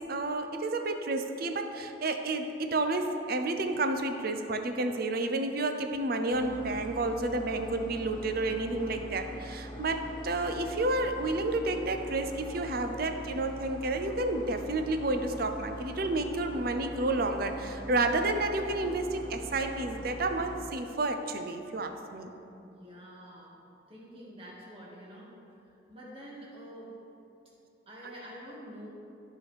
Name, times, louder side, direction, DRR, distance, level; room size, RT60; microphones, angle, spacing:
voice 1, 0.0-22.3 28.0-28.1, right 2 dB, 50° right, 6 dB, 0.6 m, -30 dB
sound 1, 6.3-20.6, equal, 25° left, 0.7 m, -42 dB
voice 2, 22.5-23.6 23.9-25.3 25.9-27.0 27.9-28.9, equal, 30° right, -6 dB, 1.8 m, -47 dB
13.0 x 5.0 x 3.4 m, 2.8 s
head